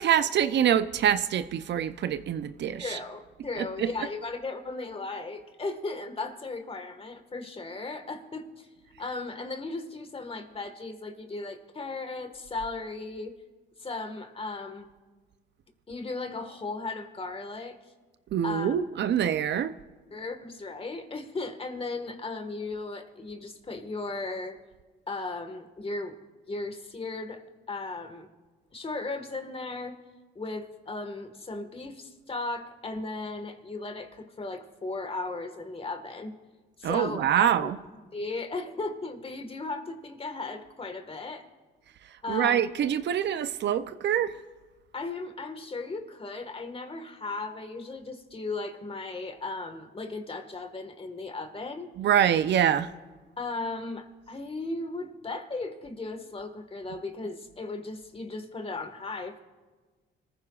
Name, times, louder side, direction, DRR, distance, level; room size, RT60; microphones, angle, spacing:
voice 1, 0.0-3.0 3.6-4.1 18.3-19.8 36.8-37.8 42.3-44.4 52.0-52.9, right 9 dB, 60° right, 0.6 m, -25 dB
voice 2, 2.8-8.7 9.0-13.3 13.8-14.9 15.9-17.8 18.4-18.8 20.1-24.6 25.1-26.2 26.5-28.3 28.7-30.0 30.3-36.3 36.8-37.7 38.1-41.4 42.2-42.6 44.9-51.9 53.4-59.4, left 3 dB, 30° left, 1.6 m, -36 dB
26.5 x 14.5 x 2.4 m
cardioid pair, 90°, 20 cm